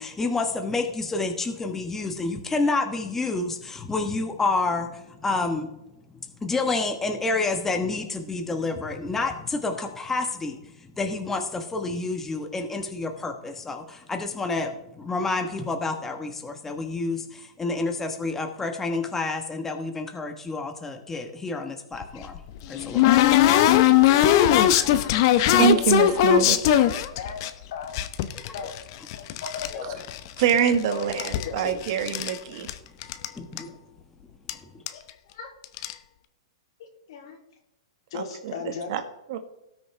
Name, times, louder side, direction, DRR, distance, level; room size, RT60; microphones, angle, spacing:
voice 1, 0.0-5.7 6.4-22.4 22.7-23.3 33.4-33.8, left 3 dB, 10° left, 5 dB, 1.2 m, -29 dB
sound 1, 22.0-27.5 27.9-29.7 30.0-30.8 31.0-32.4 32.7-32.8 33.0-33.3 33.6-33.7 34.5-34.6 34.9-35.1 35.6-35.9, left 12 dB, 50° left, 0.8 m, -20 dB
voice 2, 25.6-26.6 30.4-32.7 38.1-38.5 38.9-39.0 39.3-39.4, right 8 dB, 55° right, 8 dB, 1.4 m, -24 dB
voice 3, 30.9-31.8 34.9-35.0 35.3-35.5 37.1-37.4 38.1-38.9, left 6 dB, 65° left, 3 dB, 2.7 m, -36 dB
18.0 x 6.3 x 3.3 m, 0.91 s
hypercardioid pair, 135°, 3 cm